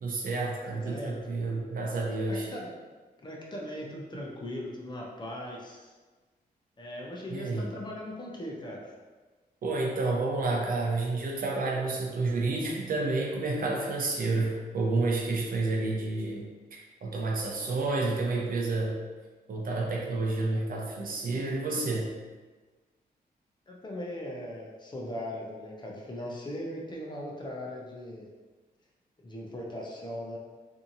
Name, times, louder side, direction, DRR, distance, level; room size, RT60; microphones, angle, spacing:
voice 1, 0.0-2.5 7.3-7.7 9.6-19.0 19.5-22.1, right 3 dB, 60° right, -1 dB, 0.6 m, -30 dB
voice 2, 0.6-1.1 2.3-2.7 3.2-5.9 6.8-8.9 23.7-28.3 29.2-30.4, left 1 dB, 30° left, -2 dB, 0.6 m, -39 dB
2.7 x 2.6 x 2.6 m, 1.3 s
cardioid pair, 90°, 16 cm